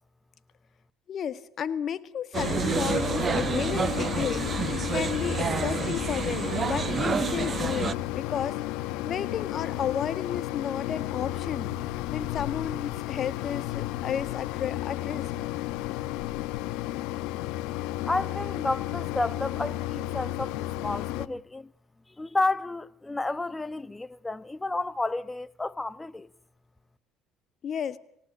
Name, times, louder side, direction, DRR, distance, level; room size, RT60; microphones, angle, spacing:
voice 1, 1.1-8.6 9.0-11.7 12.1-15.3 27.6-28.0, left 8 dB, 50° left, 1.7 m, -32 dB
Mechanisms, 2.3-21.3, left 15 dB, 80° left, 0.9 m, -33 dB
sound 1, 2.3-7.9, right 6 dB, 35° right, 1.2 m, -29 dB
voice 2, 18.1-21.7 22.1-26.3, left 2 dB, 15° left, 1.0 m, -31 dB
27.0 x 18.0 x 9.9 m
supercardioid pair, 85°, 0 cm